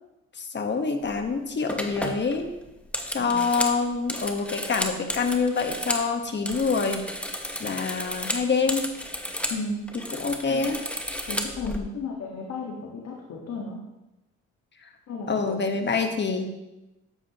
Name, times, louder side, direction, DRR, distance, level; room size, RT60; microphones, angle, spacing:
voice 1, 0.4-2.5 3.1-7.1 7.6-8.9 10.2-10.8 11.7-11.9 15.3-16.5, left 4 dB, 35° left, 5 dB, 1.4 m, -26 dB
sound 1, 1.1-1.3 1.7-6.1 6.4-9.6 9.9-11.8, equal, 5° left, 1.1 m, -32 dB
voice 2, 9.5-9.9 10.5-10.7 11.3-13.8 15.1-15.6 15.9-16.0, left 3 dB, 60° left, -1 dB, 1.7 m, -34 dB
12.5 x 8.8 x 3.0 m, 0.97 s
cardioid pair, 90°, 30 cm